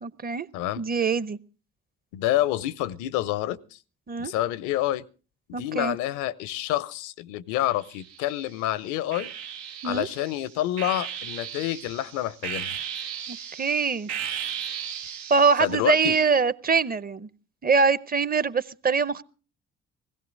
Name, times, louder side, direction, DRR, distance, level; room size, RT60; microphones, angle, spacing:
voice 1, 0.0-0.5 0.8-1.4 4.1-4.3 5.5-6.0 9.8-10.1 13.3-14.1 15.3-17.3 17.6-19.2, right 5 dB, 30° right, 0.8 m, -23 dB
voice 2, 2.1-3.8 4.2-5.0 5.6-9.3 9.8-12.7 15.6-16.2, left 14 dB, 70° left, 0.7 m, -28 dB
sound 1, 7.7-8.5 9.1-15.7, right 8 dB, 85° right, 1.0 m, -36 dB
16.5 x 16.5 x 3.9 m
hypercardioid pair, 45°, 31 cm